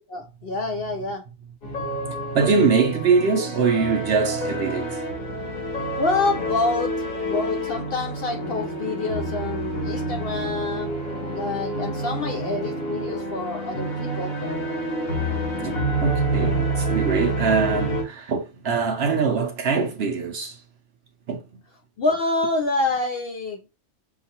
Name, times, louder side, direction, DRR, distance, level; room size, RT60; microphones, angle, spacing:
voice 1, 0.1-1.2 6.0-7.0 7.2-10.9 11.3-14.4 22.0-23.6, left 3 dB, 60° left, 0.6 m, -27 dB
sound 1, 1.6-18.0, right 1 dB, 90° left, 1.9 m, -28 dB
voice 2, 1.8-5.1 15.6-20.6 21.3-21.6, right 5 dB, 60° right, 0.7 m, -23 dB
5.7 x 2.3 x 2.8 m
omnidirectional pair, 1.4 m